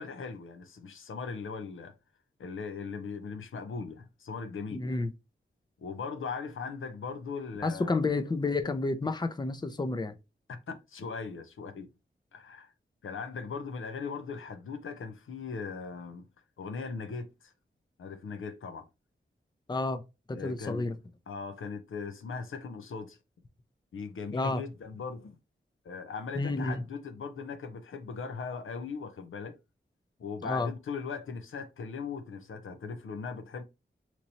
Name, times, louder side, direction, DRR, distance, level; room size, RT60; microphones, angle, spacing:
voice 1, 0.0-1.9 2.4-5.0 5.8-8.1 10.5-11.9 12.3-12.7 13.0-16.3 16.6-17.5 18.0-18.9 20.3-20.8 21.3-23.2 23.9-25.4 25.8-29.6 30.2-33.6, left 5 dB, 85° left, 0.6 m, -39 dB
voice 2, 4.7-5.1 7.6-10.1 19.7-20.0 20.3-21.0 24.3-24.6 26.3-26.8 30.4-30.7, left 3 dB, 20° left, 0.5 m, -30 dB
3.0 x 2.7 x 4.1 m
cardioid pair, 50°, 20 cm